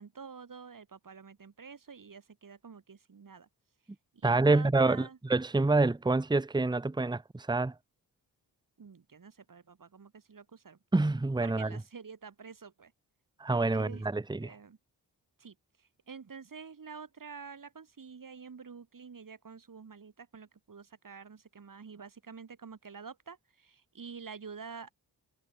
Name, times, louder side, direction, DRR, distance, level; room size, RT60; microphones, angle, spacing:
voice 1, 0.0-3.5 4.1-5.2 8.8-10.8 11.4-12.9 13.7-14.0 14.4-14.8 15.4-24.9, right 5 dB, 45° right, 2.5 m, -48 dB
voice 2, 4.2-7.7 10.9-11.7 13.4-14.5, right 3 dB, 10° right, 0.9 m, -27 dB
supercardioid pair, 45°, 43 cm